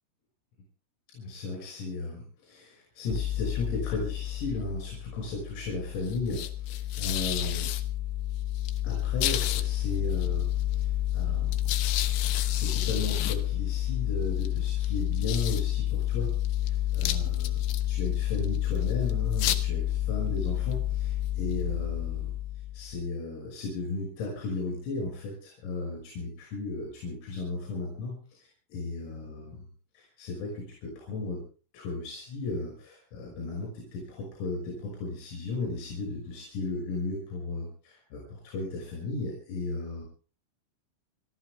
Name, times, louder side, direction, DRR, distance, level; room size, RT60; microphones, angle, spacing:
voice 1, 1.1-7.7 8.8-11.7 12.5-17.6 17.9-22.3 22.7-29.6 30.0-31.4 31.7-40.0, left 3 dB, 90° left, -1 dB, 8.7 m, -35 dB
sound 1, 3.1-23.0, left 13 dB, 75° left, 3.0 m, -29 dB
29.5 x 13.0 x 3.5 m, 0.38 s
omnidirectional pair, 6.0 m